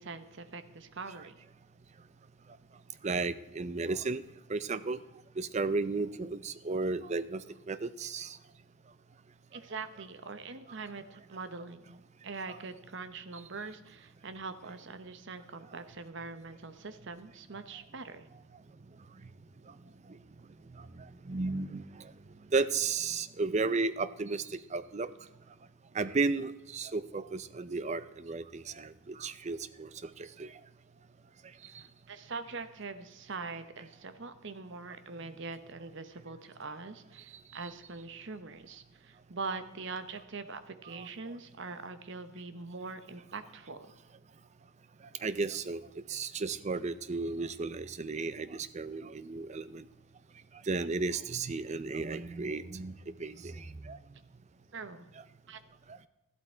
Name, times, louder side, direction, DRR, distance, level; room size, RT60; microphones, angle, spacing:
voice 1, 0.0-1.3 9.5-18.3 31.8-43.9 54.7-55.1 55.5-55.6, right 4 dB, 60° right, 11 dB, 0.9 m, -43 dB
voice 2, 3.0-4.2 4.5-5.0 5.4-8.4 20.9-22.1 22.5-25.1 25.9-30.5 40.9-41.1 45.2-49.8 50.7-54.0, right 3 dB, 35° right, 14 dB, 0.5 m, -34 dB
13.5 x 12.0 x 4.4 m, 1.0 s
head